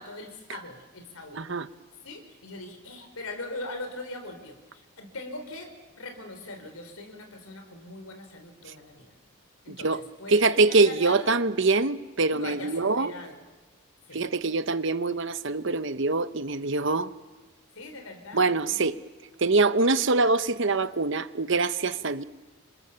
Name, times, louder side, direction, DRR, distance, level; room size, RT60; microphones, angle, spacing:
voice 1, 0.0-1.4 2.0-9.2 9.6-11.3 12.3-13.4 14.1-14.3 17.7-19.0, left 2 dB, 80° left, 6 dB, 4.0 m, -41 dB
voice 2, 1.3-1.7 9.7-10.0 10.3-13.1 14.1-17.1 18.3-19.0 19.4-22.2, right 3 dB, 55° right, 13 dB, 0.9 m, -24 dB
27.5 x 26.0 x 7.0 m, 1.2 s
head